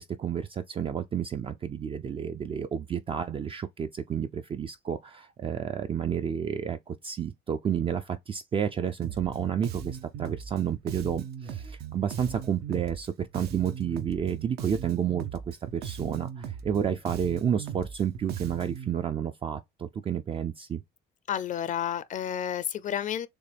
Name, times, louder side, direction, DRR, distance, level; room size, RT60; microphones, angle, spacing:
voice 1, 0.0-20.8, right 8 dB, 30° right, 0.4 m, -30 dB
Bass guitar, 9.0-18.9, right 8 dB, 70° right, 0.8 m, -38 dB
voice 2, 21.3-23.3, left 9 dB, 50° left, 0.4 m, -31 dB
6.7 x 2.3 x 3.4 m
cardioid pair, 110°, 17 cm